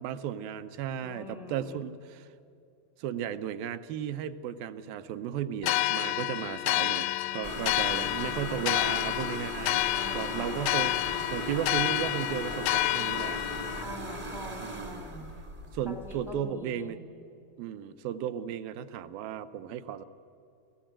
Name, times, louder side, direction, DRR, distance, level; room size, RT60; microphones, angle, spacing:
voice 1, 0.0-2.3 3.0-9.9 10.1-10.9 11.3-13.4 14.6-15.0 15.7-17.0 17.6-20.1, right 9 dB, 75° right, 10 dB, 2.4 m, -35 dB
voice 2, 1.0-1.8 9.9-11.3 13.8-15.3 15.8-17.0, equal, ahead, 3 dB, 0.5 m, -44 dB
sound 1, 5.6-13.8, left 16 dB, 80° left, 2.0 m, -29 dB
sound 2, 7.4-16.4, right 1 dB, 45° right, 0.6 m, -39 dB
29.0 x 15.0 x 8.8 m, 2.7 s
omnidirectional pair, 4.4 m